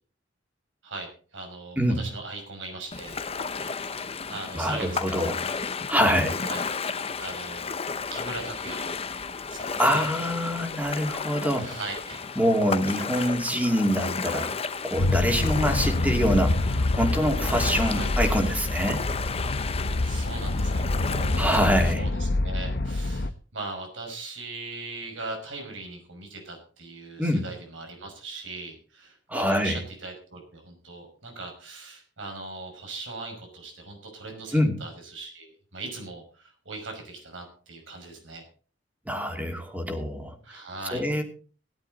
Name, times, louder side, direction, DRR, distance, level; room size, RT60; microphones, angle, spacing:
voice 1, 0.8-3.2 4.3-5.2 6.4-6.7 7.2-7.7 8.1-9.0 9.5-10.1 11.5-12.3 13.2-13.4 17.8-18.1 20.0-21.6 21.8-38.4 40.4-41.1, right 3 dB, 90° right, 3 dB, 5.9 m, -40 dB
Ocean, 2.9-21.9, left 5 dB, 30° left, 0.8 m, -33 dB
voice 2, 4.5-5.4 5.9-6.4 9.8-11.8 12.4-14.5 14.8-19.0 21.4-22.1 27.2-27.5 29.3-29.8 34.5-34.7 39.1-40.3 40.9-41.2, equal, 10° right, 4 dB, 2.7 m, -25 dB
sound 1, 15.0-23.3, left 2 dB, 60° left, 0.9 m, -26 dB
17.0 x 11.5 x 4.1 m, 0.40 s
head